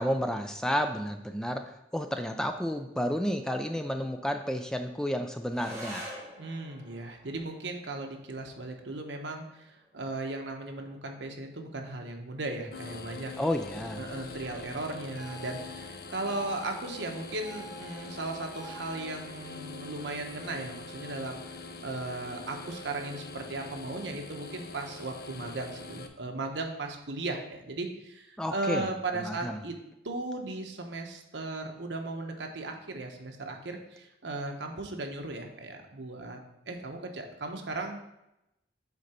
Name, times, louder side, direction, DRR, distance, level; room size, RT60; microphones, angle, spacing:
voice 1, 0.0-6.1 13.4-14.1 28.4-28.9 29.1-29.6, equal, 5° left, 6 dB, 0.3 m, -31 dB
sound 1, 5.5-14.5, equal, 15° right, 1.8 m, -49 dB
voice 2, 6.4-9.7 9.9-13.3 14.0-21.4 21.8-29.7 30.0-36.4 36.7-38.1, right 2 dB, 75° right, 3 dB, 1.0 m, -37 dB
sound 2, 12.7-26.1, left 3 dB, 55° left, 0.6 m, -44 dB
sound 3, 15.2-19.0, right 1 dB, 85° left, 1.1 m, -49 dB
8.3 x 3.9 x 4.3 m, 0.87 s
head